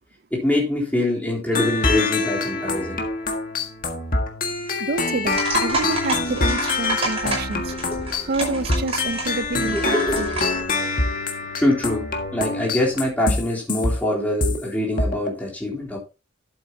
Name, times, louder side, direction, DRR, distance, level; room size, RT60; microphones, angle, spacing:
voice 1, 0.3-3.0 7.8-8.3 9.7-10.5 11.6-12.1 12.3-16.0, left 1 dB, 10° left, 3.6 m, -24 dB
sound 1, 1.5-14.6 15.0-15.3, left 3 dB, 45° left, 1.7 m, -25 dB
voice 2, 4.8-7.7 8.2-10.3, right 3 dB, 50° right, 0.5 m, -28 dB
sound 2, 5.3-10.6, right 2 dB, 30° right, 5.4 m, -29 dB
11.5 x 8.1 x 2.9 m
head